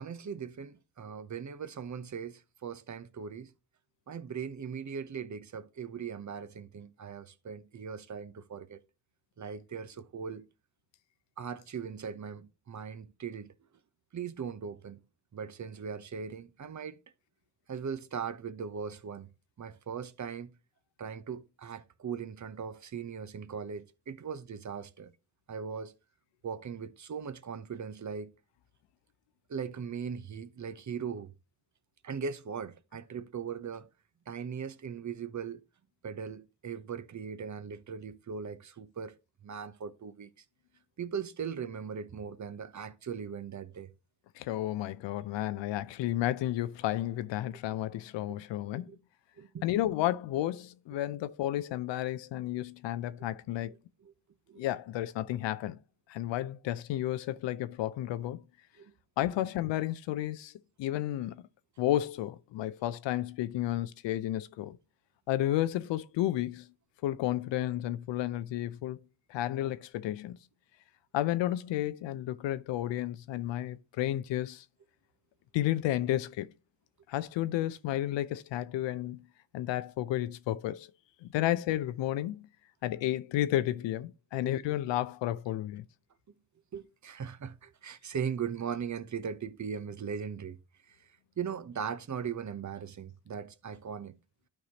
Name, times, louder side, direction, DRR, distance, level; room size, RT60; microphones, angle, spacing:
voice 1, 0.0-3.5 4.1-8.8 9.4-10.4 11.4-13.5 14.1-15.0 15.3-17.0 17.7-19.3 19.6-20.5 21.0-25.1 25.5-25.9 26.4-28.3 29.5-31.3 32.0-33.9 34.3-35.6 36.0-39.1 39.4-40.3 41.0-43.9 48.3-48.4 48.9-49.0 49.4-49.7 54.0-54.1 54.5-54.7 58.8-58.9 59.4-59.5 84.3-84.5 86.7-90.6 90.8-91.1 91.4-94.2, right 6 dB, 40° right, 0.9 m, -39 dB
voice 2, 44.4-48.9 49.6-53.7 54.6-55.8 56.1-58.4 59.2-60.5 60.8-61.4 61.8-64.8 65.3-66.7 67.0-69.0 69.3-70.4 71.1-74.6 75.5-76.5 77.1-79.2 79.5-80.9 81.2-82.5 82.8-85.8, left 14 dB, 75° left, 0.6 m, -32 dB
12.0 x 4.7 x 2.9 m
hypercardioid pair, 40°, 45 cm